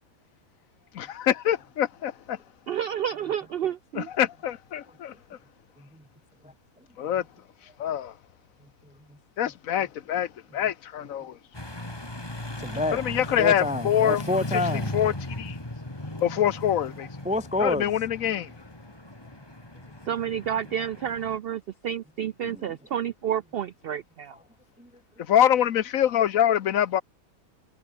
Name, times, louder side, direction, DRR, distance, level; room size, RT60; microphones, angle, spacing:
voice 1, 0.9-2.4 3.9-5.1 7.0-7.2 7.8-8.1 9.4-11.4 12.9-14.2 14.9-15.6 16.2-17.1 17.6-18.5 25.3-27.0, left 10 dB, 65° left, 1.2 m, -25 dB
voice 2, 2.7-4.1 20.1-24.3, right 9 dB, 85° right, 0.5 m, -30 dB
sound 1, 11.5-21.4, left 1 dB, 15° left, 2.5 m, -37 dB
voice 3, 12.6-13.0 13.4-14.9 17.2-17.9 22.4-22.7 24.8-24.9, left 2 dB, 10° right, 0.3 m, -28 dB
omnidirectional pair, 1.6 m